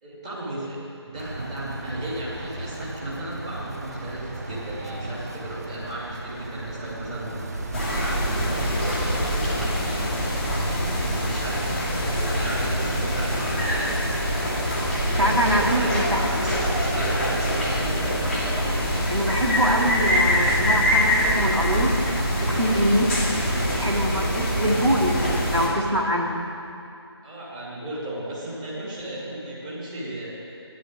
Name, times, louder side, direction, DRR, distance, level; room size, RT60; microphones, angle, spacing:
voice 1, 0.0-10.4 11.1-14.0 14.6-14.7 15.6-18.5 27.2-30.5, right 1 dB, 15° right, -8 dB, 2.4 m, -35 dB
sound 1, 1.1-8.5, right 2 dB, 35° right, 1.0 m, -36 dB
sound 2, 7.7-25.7, equal, ahead, 1.3 m, -24 dB
sound 3, 12.9-25.9, right 1 dB, 65° right, 2.9 m, -38 dB
voice 2, 15.2-16.2 19.1-22.1 22.4-23.1 23.8-25.2 25.5-26.4, equal, 90° right, 0 dB, 2.1 m, -24 dB
13.0 x 10.0 x 6.5 m, 2.5 s
figure-of-eight pair, 160°, 14 cm